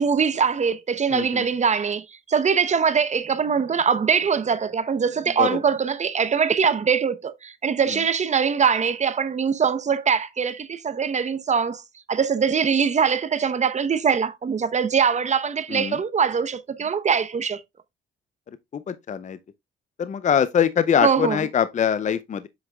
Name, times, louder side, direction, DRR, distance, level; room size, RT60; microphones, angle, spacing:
voice 1, 0.0-11.8 12.1-17.6 21.0-21.4, right 6 dB, 35° right, 0.9 m, -22 dB
voice 2, 1.1-1.5 5.4-5.6 7.9-8.0 15.7-16.0 18.7-19.4 20.0-22.5, left 8 dB, 40° left, 0.6 m, -23 dB
8.0 x 5.7 x 2.3 m
cardioid pair, 90°, 20 cm